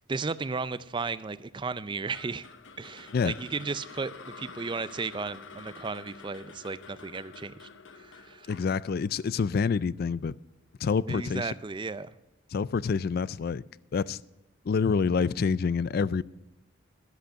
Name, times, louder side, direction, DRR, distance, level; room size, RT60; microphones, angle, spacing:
voice 1, 0.0-2.5 2.8-7.7 8.0-8.5 11.1-12.1, right 4 dB, 25° right, 0.4 m, -34 dB
sound 1, 2.1-10.3, left 4 dB, 65° left, 0.8 m, -48 dB
voice 2, 8.5-10.3 10.8-11.5 12.5-13.6 13.9-14.2 14.6-16.2, left 5 dB, 50° left, 0.3 m, -27 dB
13.0 x 7.8 x 6.2 m
head